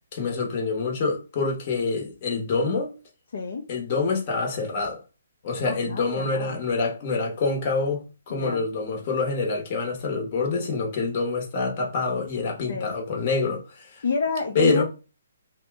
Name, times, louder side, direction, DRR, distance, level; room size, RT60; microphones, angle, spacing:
voice 1, 0.1-2.9 3.7-5.0 5.4-14.0 14.5-14.8, left 3 dB, 30° left, 0.9 m, -26 dB
voice 2, 3.3-3.7 5.7-6.6 8.3-8.6 12.7-13.0 14.0-14.8, left 4 dB, 60° left, 0.5 m, -29 dB
2.7 x 2.1 x 3.3 m
hypercardioid pair, 165°, 0 cm